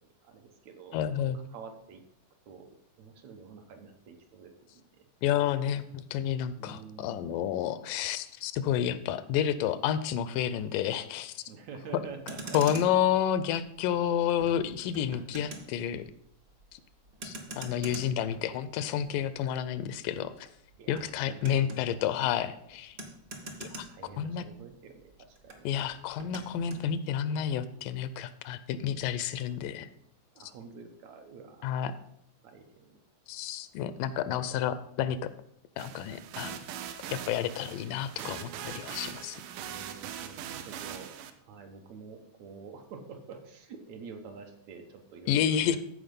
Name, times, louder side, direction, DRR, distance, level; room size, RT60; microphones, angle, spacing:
voice 1, 0.0-2.0 2.5-2.7 3.0-5.1 6.6-7.6 11.5-12.8 17.9-18.3 20.8-21.9 22.3-22.5 23.9-25.7 30.4-32.0 32.4-33.0 39.6-41.1 41.4-45.8, right 5 dB, 70° right, 4 dB, 2.0 m, -48 dB
voice 2, 0.9-1.4 5.2-11.4 12.5-16.0 16.7-16.8 17.2-20.5 20.9-23.0 23.6-23.9 24.2-24.4 25.7-29.9 31.6-31.9 33.3-35.2 35.8-36.6 37.1-39.4 45.3-45.8, left 9 dB, 85° left, 14 dB, 2.2 m, -30 dB
Motor vehicle (road), 12.1-24.7 25.0-26.9, right 2 dB, 50° right, 1.2 m, -45 dB
sound 1, 35.8-41.3, right 9 dB, 85° right, 2.3 m, -41 dB
14.0 x 4.7 x 5.2 m, 0.73 s
omnidirectional pair, 3.7 m